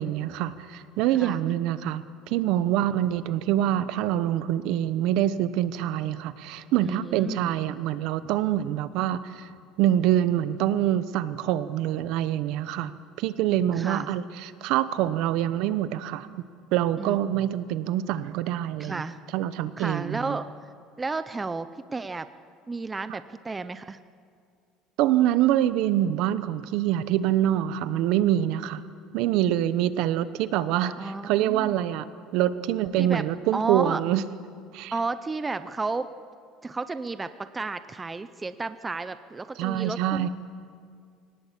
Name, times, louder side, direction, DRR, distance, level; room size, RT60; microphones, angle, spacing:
voice 1, 0.0-9.5 9.8-12.9 13.2-16.3 16.7-19.0 19.3-20.4 25.0-28.8 29.1-32.1 32.3-34.2 34.7-34.9 39.6-40.3, right 12 dB, 65° right, 14 dB, 0.9 m, -25 dB
voice 2, 6.8-7.5 13.7-14.1 17.0-17.2 18.8-19.2 19.8-20.5 21.0-22.3 22.7-24.0 31.0-31.8 33.0-33.2 33.5-34.0 34.9-36.1 36.6-40.3, right 3 dB, 15° right, 12 dB, 0.6 m, -32 dB
23.0 x 18.0 x 8.3 m, 2.2 s
cardioid pair, 150°, 0 cm